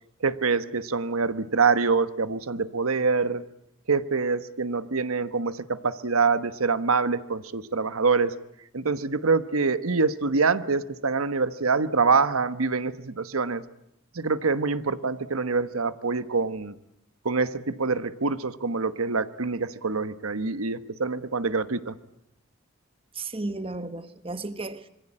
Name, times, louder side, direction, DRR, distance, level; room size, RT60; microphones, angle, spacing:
voice 1, 0.2-3.4 3.9-8.4 8.7-13.6 14.1-16.7 17.2-22.0, right 4 dB, 90° right, 1.2 m, -25 dB
voice 2, 23.1-24.9, right 2 dB, 25° right, 1.2 m, -34 dB
26.5 x 23.5 x 8.8 m
head